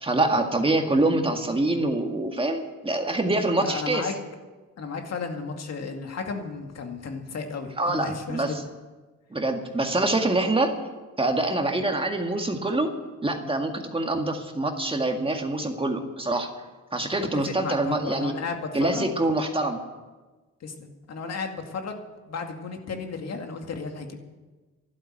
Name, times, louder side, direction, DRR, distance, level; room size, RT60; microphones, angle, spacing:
voice 1, 0.0-4.1 7.8-8.5 9.3-10.7 11.2-12.9 13.2-16.5 16.9-18.3 18.7-19.8, right 2 dB, 20° right, 4 dB, 1.9 m, -25 dB
voice 2, 3.6-4.1 4.8-8.6 17.3-19.1 20.6-24.2, left 4 dB, 60° left, 4 dB, 2.2 m, -34 dB
12.0 x 12.0 x 9.0 m, 1.3 s
cardioid pair, 90°, 30 cm